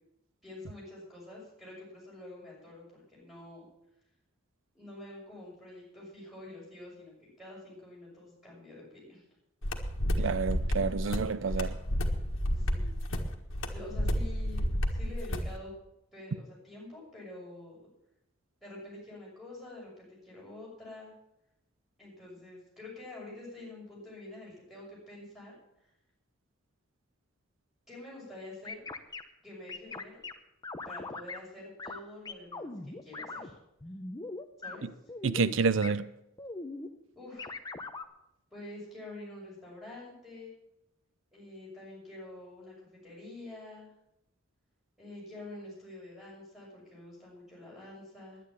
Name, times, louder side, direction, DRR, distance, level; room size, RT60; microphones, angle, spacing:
voice 1, 0.4-3.7 4.7-9.2 10.1-10.4 11.4-11.5 12.5-12.9 13.7-15.7 16.1-17.8 18.6-21.1 22.0-25.5 25.8-25.9 27.9-28.8 29.4-30.2 30.9-33.6 34.6-34.8 37.1-37.6 38.5-40.6 41.3-43.9 45.0-48.4, left 2 dB, ahead, 6.5 m, -47 dB
sound 1, 9.6-15.5, equal, 75° left, 1.6 m, -31 dB
voice 2, 10.2-11.8 34.8-34.9 35.2-36.1, right 5 dB, 65° right, 0.5 m, -29 dB
sound 2, 28.6-29.2 29.7-30.3 30.6-31.4 31.8-32.0 32.2-33.5 33.8-34.8 35.1-35.6 35.8-35.9 36.4-36.9 37.4-38.0, left 3 dB, 20° left, 0.8 m, -40 dB
10.5 x 10.0 x 8.7 m
head